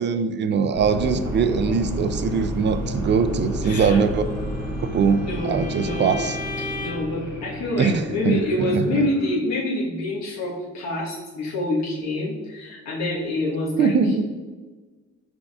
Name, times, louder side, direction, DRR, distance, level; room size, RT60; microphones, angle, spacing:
voice 1, 0.0-4.2 4.8-6.4 7.8-9.1 13.8-14.2, right 5 dB, 40° right, 11 dB, 0.4 m, -22 dB
sound 1, 0.7-9.3, equal, 10° right, 1.4 m, -31 dB
voice 2, 3.6-4.0 5.2-6.1 6.8-14.2, left 2 dB, 65° left, -6 dB, 1.3 m, -27 dB
Bowed string instrument, 4.2-7.2, left 2 dB, 30° left, 0.5 m, -36 dB
6.0 x 3.7 x 2.4 m, 1.3 s
cardioid pair, 90°, 30 cm